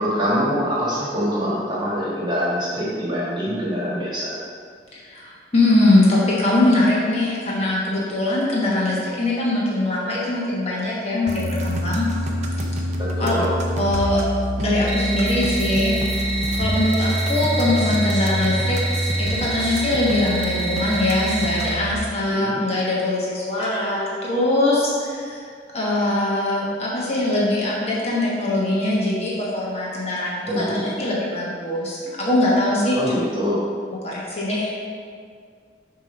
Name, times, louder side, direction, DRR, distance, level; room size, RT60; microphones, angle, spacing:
voice 1, 0.0-4.4 13.0-13.5 22.3-22.6 30.4-30.9 32.9-33.6, equal, 25° right, -7 dB, 1.5 m, -24 dB
voice 2, 4.9-12.1 13.2-13.3 13.8-14.2 14.6-15.9 16.6-18.8 19.2-25.4 25.7-33.0 34.0-34.7, left 2 dB, 35° left, -6 dB, 1.1 m, -22 dB
sound 1, 11.3-21.9, equal, 40° right, 0.6 m, -26 dB
sound 2, 14.9-21.7, right 2 dB, 90° right, 0.8 m, -28 dB
7.0 x 2.9 x 5.2 m, 2.1 s
head